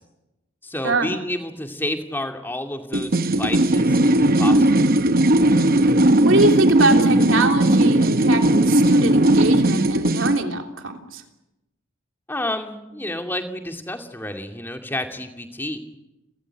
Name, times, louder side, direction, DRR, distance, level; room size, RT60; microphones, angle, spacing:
voice 1, 0.6-4.9 12.3-15.8, left 1 dB, 10° left, 4 dB, 2.4 m, -30 dB
sound 1, 2.9-10.4, right 1 dB, 40° right, 0.9 m, -17 dB
voice 2, 6.2-11.2, right 2 dB, 60° right, 4 dB, 3.3 m, -22 dB
30.0 x 14.0 x 9.9 m, 0.96 s
head